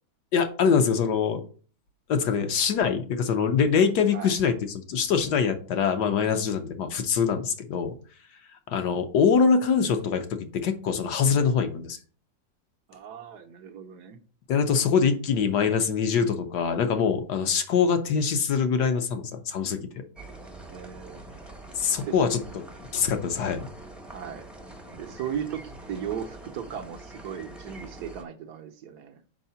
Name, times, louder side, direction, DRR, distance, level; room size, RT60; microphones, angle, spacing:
voice 1, 0.3-1.4 2.1-7.9 8.7-12.0 14.5-19.8 21.7-22.4 22.9-23.7, left 6 dB, 65° left, 7 dB, 1.3 m, -24 dB
voice 2, 12.9-14.2 20.7-21.2 22.0-22.1 24.0-24.5 24.9-29.2, right 8 dB, 65° right, 6 dB, 1.1 m, -37 dB
sound 1, 20.2-28.2, right 2 dB, ahead, 0.6 m, -44 dB
5.5 x 4.8 x 5.6 m, 0.41 s
omnidirectional pair, 2.1 m